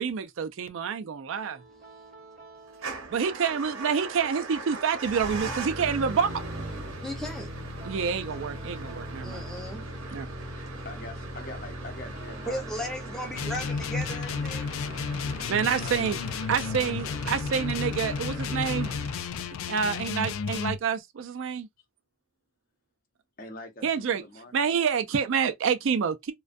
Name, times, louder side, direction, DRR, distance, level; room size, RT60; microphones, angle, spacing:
voice 1, 0.0-1.6 3.1-6.4 7.8-9.4 10.1-10.3 15.5-16.2 16.5-18.9 19.7-21.7 23.8-24.2 24.5-26.3, right 6 dB, 70° right, 0.4 m, -28 dB
sound 1, 1.3-16.2, right 3 dB, 40° right, 0.7 m, -53 dB
Motor vehicle (road) / Engine starting / Idling, 2.7-19.7, right 1 dB, 90° right, 0.8 m, -38 dB
voice 2, 7.0-7.5 9.2-9.9 12.5-14.6, equal, ahead, 0.6 m, -36 dB
voice 3, 10.8-13.8 15.5-16.2 16.4-17.0 23.4-24.5, left 1 dB, 45° left, 0.7 m, -45 dB
sound 2, 13.3-20.8, left 5 dB, 80° left, 0.3 m, -32 dB
2.3 x 2.2 x 2.5 m
head